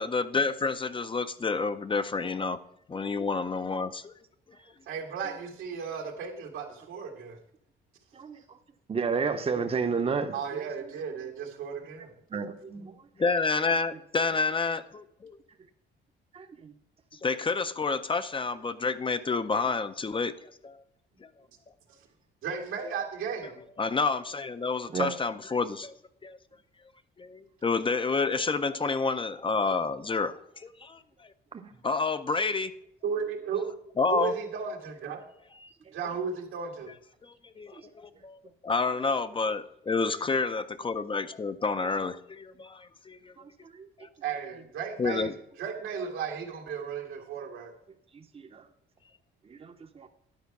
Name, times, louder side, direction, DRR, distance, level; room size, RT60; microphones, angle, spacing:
voice 1, 0.0-2.6 2.9-4.1 13.2-15.4 17.2-20.8 21.2-21.3 23.8-25.9 26.2-26.4 27.2-31.3 31.8-32.7 34.0-34.3 35.6-35.7 37.2-43.3 44.0-44.1 45.0-45.3, left 4 dB, 25° left, 0.5 m, -29 dB
voice 2, 4.9-7.4 10.3-12.1 12.7-12.8 22.4-23.6 33.0-33.7 34.1-35.2 35.9-36.9 44.2-47.7, right 6 dB, 85° right, 1.9 m, -35 dB
voice 3, 8.9-10.3 12.3-12.9 16.3-16.7 24.9-25.1 31.5-31.7 43.8-43.9 48.5-48.6 49.5-50.1, right 5 dB, 30° right, 0.7 m, -31 dB
10.5 x 4.5 x 5.9 m
cardioid pair, 90°, 20 cm